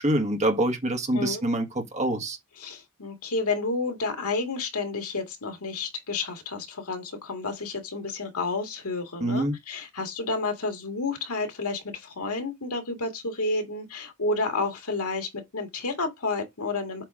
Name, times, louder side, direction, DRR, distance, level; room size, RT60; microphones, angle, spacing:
voice 1, 0.0-2.4 9.2-9.5, right 1 dB, 30° right, 1.6 m, -25 dB
voice 2, 2.6-17.0, left 3 dB, 80° left, 2.0 m, -30 dB
7.9 x 3.4 x 5.0 m
head